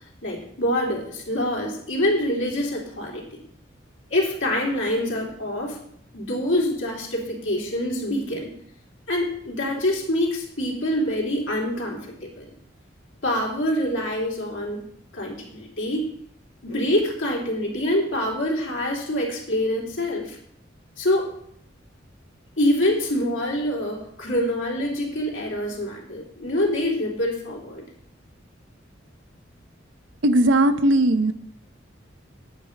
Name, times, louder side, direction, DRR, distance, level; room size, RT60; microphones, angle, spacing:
voice 1, 0.2-3.4 4.1-5.8 6.1-8.5 9.1-12.5 13.2-14.8 15.1-16.0 16.6-20.4 21.0-21.3 22.6-27.8, left 1 dB, 80° left, -2 dB, 3.3 m, -25 dB
voice 2, 30.2-31.3, right 1 dB, 70° right, 10 dB, 0.8 m, -18 dB
9.0 x 8.9 x 5.3 m, 0.70 s
head